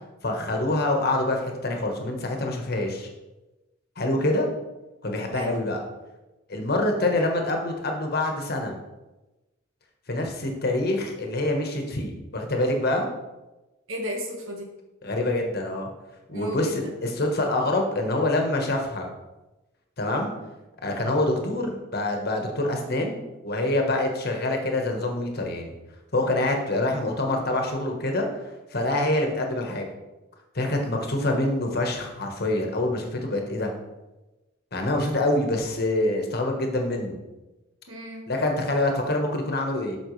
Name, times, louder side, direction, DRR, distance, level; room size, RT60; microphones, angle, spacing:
voice 1, 0.2-3.1 4.0-4.5 5.0-5.8 6.5-8.7 10.1-13.1 15.0-15.9 16.3-19.1 20.0-20.3 20.8-25.7 26.1-28.4 28.7-29.9 30.5-33.7 34.7-37.2 38.3-40.0, left 1 dB, 50° left, 2 dB, 1.3 m, -26 dB
voice 2, 13.9-14.7 16.3-16.9 37.9-38.2, left 1 dB, 90° right, 1 dB, 1.5 m, -34 dB
8.8 x 6.1 x 3.2 m, 1.1 s
head